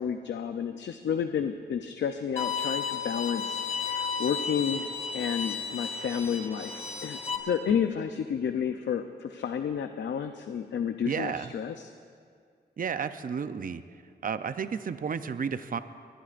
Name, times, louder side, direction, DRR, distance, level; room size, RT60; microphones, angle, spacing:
voice 1, 0.0-11.9, left 7 dB, 85° left, 7 dB, 0.6 m, -31 dB
Bowed string instrument, 2.4-7.4, left 5 dB, 35° left, 1.9 m, -33 dB
voice 2, 11.0-11.5 12.8-13.8 14.2-15.8, right 6 dB, 50° right, 11 dB, 0.6 m, -32 dB
22.5 x 19.5 x 2.5 m, 2.2 s
cardioid pair, 85°, 18 cm